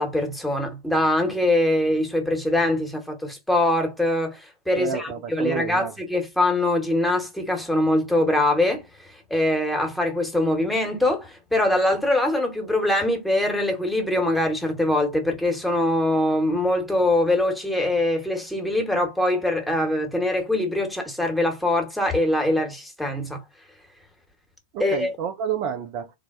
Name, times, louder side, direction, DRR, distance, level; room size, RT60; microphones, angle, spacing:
voice 1, 0.0-23.4 24.8-25.1, left 1 dB, ahead, 0.9 m, -23 dB
voice 2, 4.8-5.9 24.7-26.1, right 8 dB, 40° right, 0.3 m, -29 dB
3.2 x 2.1 x 2.3 m
figure-of-eight pair, 90°, 0 cm